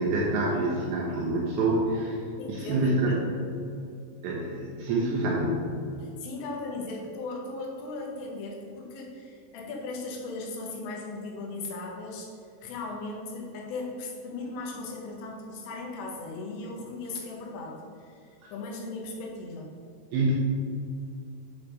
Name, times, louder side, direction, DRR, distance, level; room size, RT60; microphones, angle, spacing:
voice 1, 0.0-2.2 2.5-3.2 4.2-5.6 18.4-18.5 20.1-20.3, right 2 dB, 75° right, -3 dB, 2.7 m, -26 dB
voice 2, 2.4-3.4 6.0-18.2 18.5-19.7, left 3 dB, 80° left, -1 dB, 3.6 m, -37 dB
9.6 x 3.6 x 5.0 m, 2.4 s
omnidirectional pair, 5.8 m